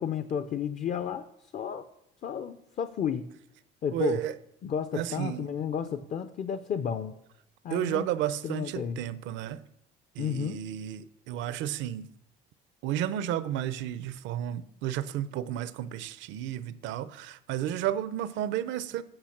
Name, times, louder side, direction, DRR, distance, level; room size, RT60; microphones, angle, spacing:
voice 1, 0.0-1.9 2.2-3.3 3.8-4.2 4.6-7.2 7.6-8.1 8.4-9.0 10.2-10.6, left 7 dB, 40° left, 0.5 m, -32 dB
voice 2, 3.9-4.3 4.9-5.5 7.7-9.6 10.2-12.1 12.8-19.0, right 11 dB, 80° right, 0.6 m, -32 dB
8.8 x 5.7 x 5.9 m
cardioid pair, 110°, 19 cm